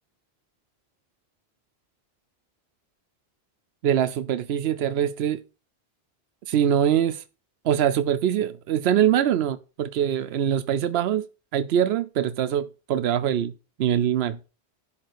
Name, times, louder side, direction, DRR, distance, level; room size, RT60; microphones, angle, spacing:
voice 1, 3.8-5.4 6.5-7.2 7.6-11.3 11.5-13.5 13.8-14.4, right 9 dB, 85° right, 0.9 m, -23 dB
11.0 x 3.7 x 6.6 m
omnidirectional pair, 1.0 m